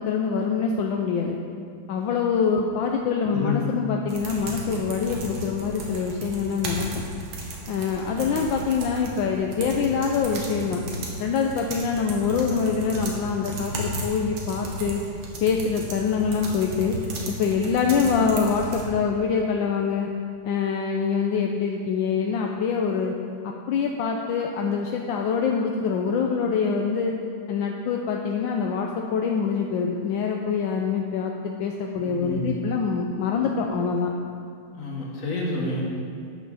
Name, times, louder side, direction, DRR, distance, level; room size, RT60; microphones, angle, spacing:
voice 1, 0.0-1.4 1.9-7.0 7.7-10.8 11.2-15.0 15.4-17.0 17.4-20.1 20.4-23.1 23.4-27.1 27.5-31.3 31.6-34.1, left 6 dB, 75° left, 1 dB, 1.4 m, -25 dB
sound 1, 4.1-18.8, right 1 dB, 80° right, 2.3 m, -35 dB
voice 2, 32.2-32.5 34.8-35.8, left 2 dB, 45° left, -3 dB, 2.2 m, -28 dB
12.0 x 9.2 x 4.1 m, 2.3 s
omnidirectional pair, 2.2 m